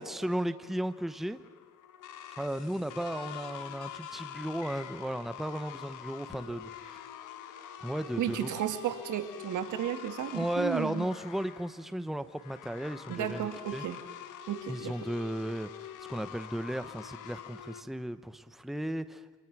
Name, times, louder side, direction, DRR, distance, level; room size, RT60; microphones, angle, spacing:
voice 1, 0.0-1.4 2.4-7.0 7.8-8.5 10.3-13.8 14.7-19.4, right 1 dB, ahead, 1.1 m, -35 dB
sound 1, 0.6-17.8, left 10 dB, 85° left, 1.6 m, -46 dB
voice 2, 8.2-11.1 13.1-14.0 14.5-14.9, right 11 dB, 80° right, 2.2 m, -34 dB
28.0 x 26.0 x 6.2 m
cardioid pair, 90°, 30 cm